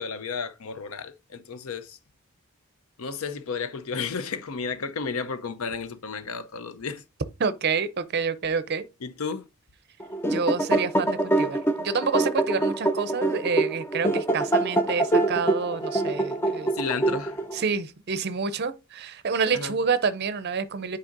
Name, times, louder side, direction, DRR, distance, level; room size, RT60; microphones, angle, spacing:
voice 1, 0.0-2.0 3.0-7.0 9.0-9.5 16.7-17.4 19.5-19.7, left 5 dB, 70° left, 0.6 m, -32 dB
voice 2, 7.4-8.8 10.3-16.7 17.5-21.0, right 5 dB, 45° right, 0.5 m, -28 dB
sound 1, 10.0-17.6, right 2 dB, 10° left, 0.4 m, -25 dB
9.8 x 4.2 x 2.5 m
head